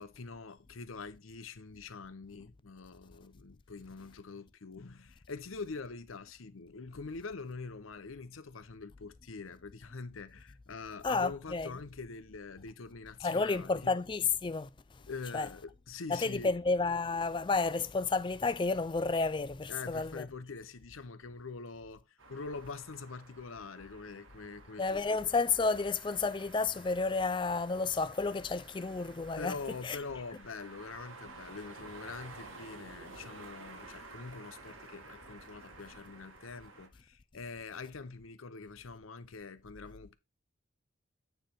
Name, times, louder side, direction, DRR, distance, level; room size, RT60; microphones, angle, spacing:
voice 1, 0.0-14.0 15.1-16.5 19.7-25.0 29.4-40.2, left 4 dB, 85° left, 0.7 m, -44 dB
voice 2, 11.0-11.7 13.2-14.7 15.3-15.5 16.1-20.3 24.8-29.5 29.8-30.0, left 4 dB, 25° left, 0.3 m, -31 dB
sound 1, 22.2-36.9, right 3 dB, 80° right, 1.6 m, -52 dB
9.0 x 3.3 x 5.8 m
head